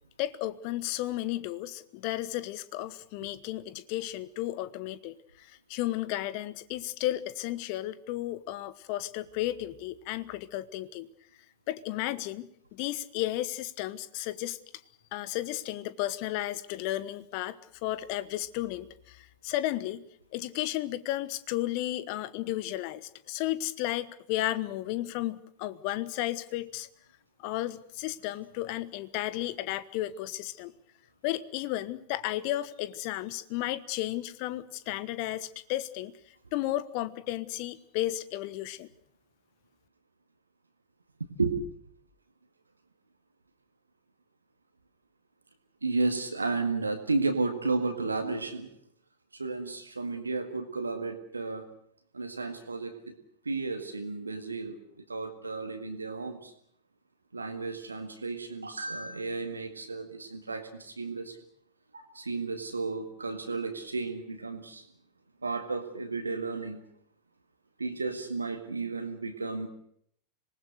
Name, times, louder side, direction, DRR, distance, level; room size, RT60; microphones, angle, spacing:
voice 1, 0.2-11.1 11.7-14.6 15.1-17.6 17.8-20.0 20.3-26.9 27.4-30.7 31.2-36.1 36.5-38.9, left 15 dB, 45° left, 17 dB, 1.1 m, -33 dB
voice 2, 45.8-48.7 49.3-51.7 52.1-53.1 53.5-54.8 55.1-56.5 57.3-61.4 61.9-64.9 65.4-66.8 67.8-69.7, right 3 dB, 80° right, 7 dB, 1.9 m, -33 dB
26.0 x 19.5 x 6.5 m, 0.68 s
figure-of-eight pair, 90°, 0 cm